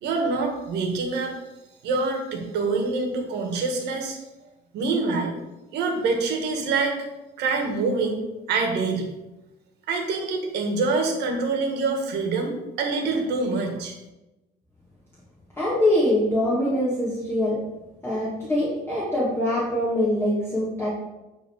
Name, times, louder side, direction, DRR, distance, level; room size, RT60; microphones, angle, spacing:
voice 1, 0.0-1.4 1.8-4.2 4.7-5.4 5.7-7.0 7.4-8.2 8.5-9.1 9.9-14.0, right 3 dB, 80° right, 3 dB, 1.7 m, -25 dB
voice 2, 15.6-17.6 18.0-20.9, left 1 dB, 15° left, -7 dB, 2.2 m, -23 dB
9.7 x 3.9 x 4.7 m, 1.0 s
cardioid pair, 110°, 17 cm